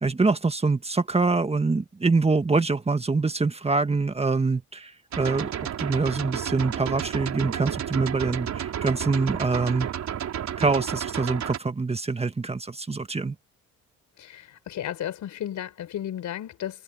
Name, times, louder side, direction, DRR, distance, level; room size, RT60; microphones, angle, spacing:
voice 1, 0.0-4.9 5.2-5.5 5.8-9.9 10.6-13.3, right 3 dB, 20° right, 1.5 m, -25 dB
sound 1, 5.1-11.6, right 9 dB, 65° right, 3.9 m, -32 dB
voice 2, 14.2-16.8, left 11 dB, 75° left, 5.0 m, -34 dB
cardioid pair, 90°, 30 cm